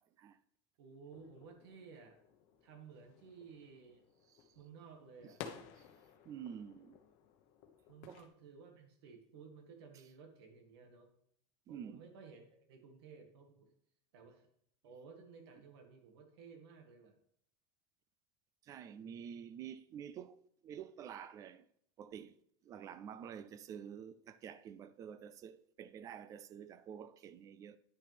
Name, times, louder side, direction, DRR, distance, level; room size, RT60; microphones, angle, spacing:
voice 1, 0.8-2.2 2.6-4.0 4.5-5.4 7.9-11.1 11.7-13.7 14.1-14.5 14.8-17.2, right 5 dB, 80° right, 1.7 m, -56 dB
sound 1, 1.1-8.3, left 8 dB, 50° left, 1.0 m, -55 dB
voice 2, 6.3-7.0 8.1-8.2 11.7-12.0 18.6-21.7 22.0-22.4 22.6-27.8, right 8 dB, 25° right, 0.3 m, -49 dB
9.8 x 6.4 x 3.4 m
supercardioid pair, 165°, 13 cm